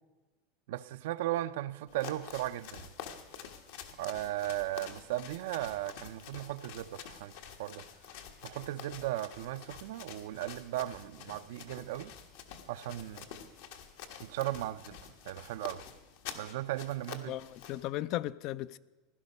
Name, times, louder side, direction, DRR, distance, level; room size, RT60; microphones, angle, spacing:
voice 1, 0.7-2.9 4.0-7.3 7.6-7.8 8.4-12.1 12.7-13.3 14.2-15.0 15.3-15.8 16.3-17.4, right 15 dB, 75° right, 0.5 m, -36 dB
sound 1, 1.9-17.9, left 8 dB, 70° left, 1.5 m, -48 dB
voice 2, 17.3-18.8, left 15 dB, 50° left, 0.4 m, -36 dB
16.5 x 11.5 x 5.4 m
supercardioid pair, 145°, 0 cm